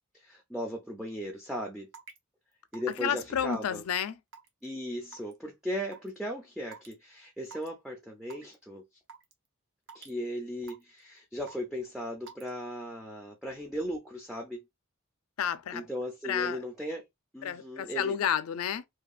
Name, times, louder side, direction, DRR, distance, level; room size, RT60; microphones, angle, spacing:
voice 1, 0.1-1.9 2.7-3.8 4.6-8.8 9.9-14.6 15.7-17.0 17.3-18.2, equal, ahead, 0.4 m, -37 dB
Raindrop / Water tap faucet / Drip, 1.9-2.2 2.7-3.0 3.5-3.8 4.3-4.7 5.1-5.3 5.9-6.1 6.7-6.9 7.5-7.7 8.3-8.5 9.1-9.3 9.9-10.1 10.7-11.0 11.5-11.8 12.3-12.5, right 5 dB, 60° right, 0.6 m, -48 dB
voice 2, 3.0-4.2 15.4-15.8 16.3-16.6 17.4-18.8, left 9 dB, 90° left, 0.4 m, -30 dB
2.7 x 2.3 x 2.3 m
head